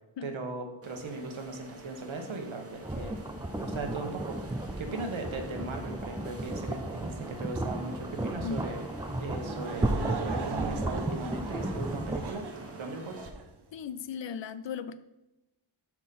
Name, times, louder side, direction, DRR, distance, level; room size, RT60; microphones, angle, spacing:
voice 1, 0.2-3.2 3.6-4.4 4.8-8.9 9.2-12.4 12.8-13.3, right 3 dB, 70° right, 1.3 m, -38 dB
sound 1, 0.8-13.3, right 2 dB, 30° right, 1.1 m, -47 dB
sound 2, 2.8-12.3, right 1 dB, 10° right, 0.3 m, -34 dB
Laughter / Crowd, 9.3-13.5, right 5 dB, 55° right, 0.8 m, -40 dB
voice 2, 13.7-15.0, left 6 dB, 65° left, 0.6 m, -37 dB
6.3 x 6.1 x 5.3 m
wide cardioid pair, 155°, 49 cm